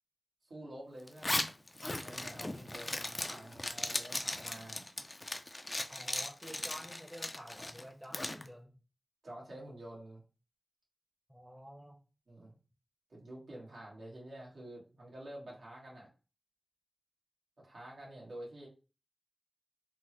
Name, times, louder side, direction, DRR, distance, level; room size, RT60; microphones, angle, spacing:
voice 1, 0.4-1.5 1.8-4.9 9.2-10.2 12.3-12.5 13.1-16.1 17.6-18.7, right 1 dB, 85° right, -4 dB, 1.4 m, -49 dB
Zipper (clothing), 1.1-8.4, left 1 dB, 30° left, 0.4 m, -38 dB
voice 2, 5.9-8.7 11.3-12.0, equal, 5° right, 2 dB, 0.7 m, -50 dB
3.5 x 2.0 x 3.0 m, 0.35 s
wide cardioid pair, 60°, 0 cm